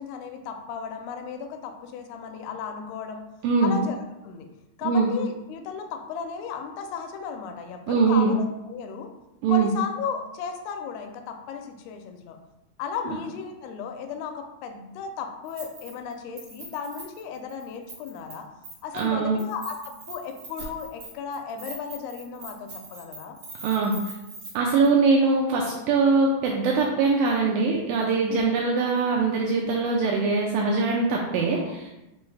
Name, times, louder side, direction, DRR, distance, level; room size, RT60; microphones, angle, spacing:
voice 1, 0.0-3.2 3.6-4.0 4.2-4.5 4.8-9.1 9.5-12.4 12.8-18.5 18.8-23.4 28.3-28.5 31.4-31.7, left 6 dB, 85° left, 5 dB, 2.5 m, -35 dB
voice 2, 3.4-3.8 4.8-5.1 7.9-8.3 9.4-9.7 13.1-13.2 18.9-19.4 23.6-24.1 24.5-31.9, right 4 dB, 85° right, -1 dB, 2.0 m, -22 dB
Keys jangling, 15.5-16.1 16.4-18.3 18.6-19.1 19.4-24.5 24.8-24.9, right 2 dB, 65° right, 1.2 m, -42 dB
6.2 x 2.3 x 3.2 m, 0.96 s
omnidirectional pair, 4.4 m